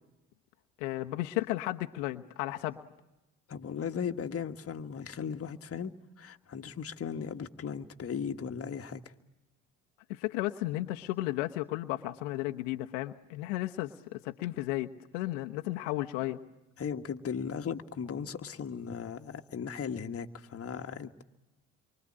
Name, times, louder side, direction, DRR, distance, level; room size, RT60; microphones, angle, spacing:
voice 1, 0.8-2.8 10.1-16.4, left 17 dB, 80° left, 1.1 m, -34 dB
voice 2, 3.5-9.0 16.8-21.2, left 7 dB, 40° left, 1.7 m, -37 dB
27.5 x 24.5 x 8.8 m
hypercardioid pair, 65°, 36 cm